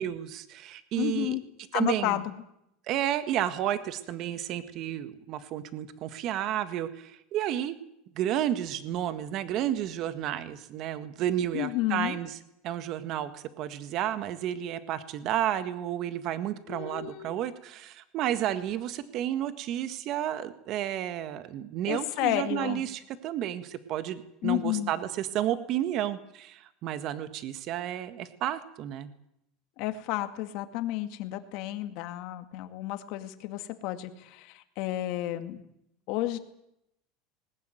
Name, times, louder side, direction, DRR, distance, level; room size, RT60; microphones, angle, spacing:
voice 1, 0.0-1.4 1.7-2.2 2.9-7.8 8.2-12.3 12.6-29.1, right 11 dB, 45° right, 12 dB, 1.7 m, -31 dB
voice 2, 1.0-1.4 1.7-2.3 11.5-12.2 16.7-17.5 21.8-22.8 24.4-24.9 29.8-35.6 36.1-36.4, left 15 dB, 60° left, 8 dB, 2.1 m, -31 dB
20.0 x 19.0 x 9.3 m, 0.80 s
supercardioid pair, 145°, 0 cm